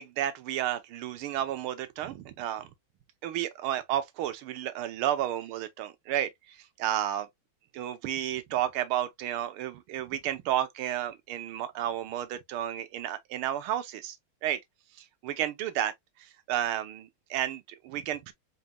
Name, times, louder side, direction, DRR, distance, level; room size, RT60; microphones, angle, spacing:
voice 1, 0.0-2.7 3.2-7.3 7.7-14.2 14.4-14.6 15.2-15.9 16.5-18.3, right 11 dB, 85° right, 1.6 m, -32 dB
4.3 x 4.1 x 2.2 m
omnidirectional pair, 2.3 m